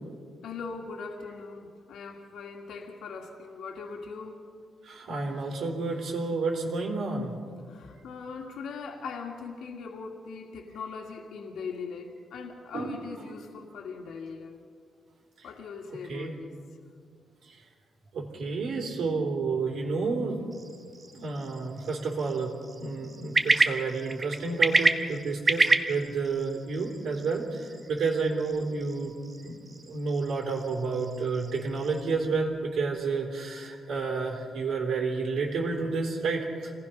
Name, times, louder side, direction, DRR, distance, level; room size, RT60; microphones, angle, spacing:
voice 1, 0.4-4.4 7.7-14.6 15.4-16.5, left 5 dB, 75° left, 2 dB, 2.1 m, -40 dB
voice 2, 4.8-7.3 12.7-13.0 15.4-15.5 16.1-16.3 17.4-17.6 18.1-20.4 21.1-29.1 29.4-29.6 29.8-36.8, right 4 dB, 65° right, -1 dB, 3.4 m, -30 dB
sound 1, 20.5-32.2, right 3 dB, 20° right, 1.1 m, -30 dB
28.0 x 18.5 x 5.9 m, 2.2 s
wide cardioid pair, 175°, 0 cm